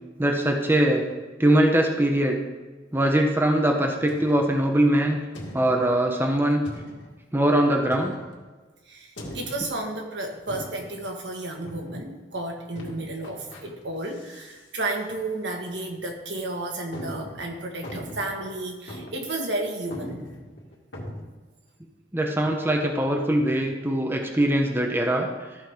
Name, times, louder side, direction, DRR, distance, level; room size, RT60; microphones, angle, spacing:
voice 1, 0.2-1.0 1.4-2.4 2.9-5.2 5.5-6.6 7.3-8.1 22.1-25.3, right 1 dB, 10° right, 2 dB, 0.8 m, -22 dB
sound 1, 4.1-4.6 5.3-6.0 6.6-7.2 7.9-8.5 9.2-9.8 10.5-11.0 11.6-12.0 12.7-13.6 14.0-14.6 14.9-15.0 15.7-15.8 16.3-16.4 16.9-18.5 18.9-19.3 19.6-19.7 19.9-21.2, left 1 dB, 85° left, 2.0 m, -40 dB
voice 2, 8.8-20.2, right 2 dB, 75° right, 2 dB, 1.5 m, -32 dB
14.0 x 5.5 x 3.5 m, 1.3 s
head